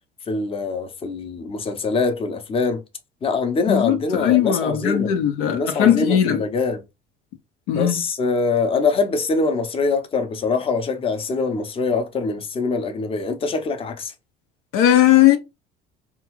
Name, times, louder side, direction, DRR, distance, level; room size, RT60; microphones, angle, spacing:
voice 1, 0.3-2.8 3.2-5.2 5.5-6.8 7.7-14.1, left 4 dB, 25° left, 0.7 m, -23 dB
voice 2, 3.7-6.4 7.7-8.0 14.7-15.4, left 11 dB, 75° left, 0.6 m, -18 dB
2.9 x 2.4 x 3.0 m
supercardioid pair, 90°, 20 cm